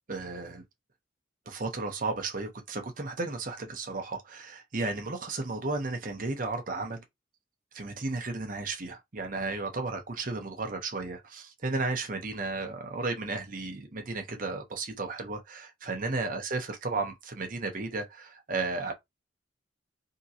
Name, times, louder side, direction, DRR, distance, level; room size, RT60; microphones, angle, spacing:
voice 1, 0.1-0.6 1.5-7.0 7.7-18.9, right 3 dB, 45° right, 0.9 m, -34 dB
3.7 x 2.9 x 2.8 m
head